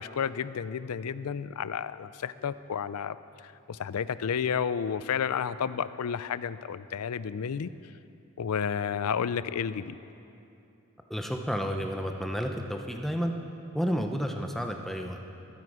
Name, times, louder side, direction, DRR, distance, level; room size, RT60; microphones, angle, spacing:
voice 1, 0.0-3.2 3.4-7.7 8.4-10.0, left 7 dB, 90° left, 15 dB, 0.4 m, -31 dB
voice 2, 11.1-13.3 13.7-15.2, equal, ahead, 3 dB, 0.7 m, -31 dB
20.5 x 9.4 x 4.9 m, 2.7 s
head